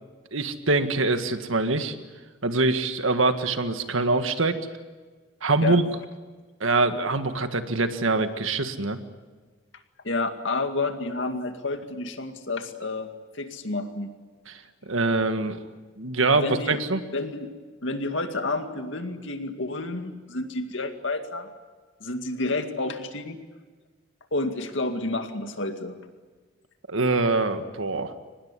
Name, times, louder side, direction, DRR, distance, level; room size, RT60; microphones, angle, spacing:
voice 1, 0.3-2.0 2.4-4.6 5.4-5.8 6.6-9.0 14.5-15.6 16.0-17.0 26.9-28.1, right 3 dB, 85° right, 8 dB, 1.8 m, -24 dB
voice 2, 10.0-13.1 13.3-14.1 16.4-16.8 17.1-17.5 17.8-21.5 22.0-23.4 24.3-26.0, left 2 dB, 70° left, 6 dB, 2.2 m, -30 dB
24.5 x 20.0 x 9.8 m, 1.4 s
head